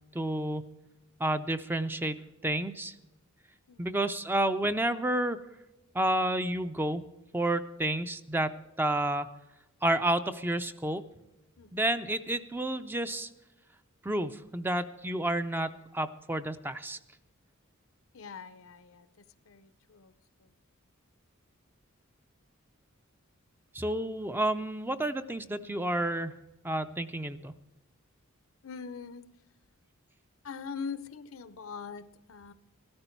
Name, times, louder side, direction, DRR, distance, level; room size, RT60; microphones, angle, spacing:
voice 1, 0.1-0.7 1.2-2.9 3.8-5.4 5.9-7.0 7.3-9.3 9.8-11.0 11.7-13.3 14.0-17.0 23.7-26.3 26.6-27.5, right 1 dB, 10° right, 10 dB, 0.5 m, -30 dB
voice 2, 11.6-11.9 18.1-20.1 20.4-20.5 28.6-29.3 30.4-32.5, left 5 dB, 70° left, 14 dB, 0.7 m, -43 dB
15.0 x 13.0 x 4.5 m, 1.0 s
head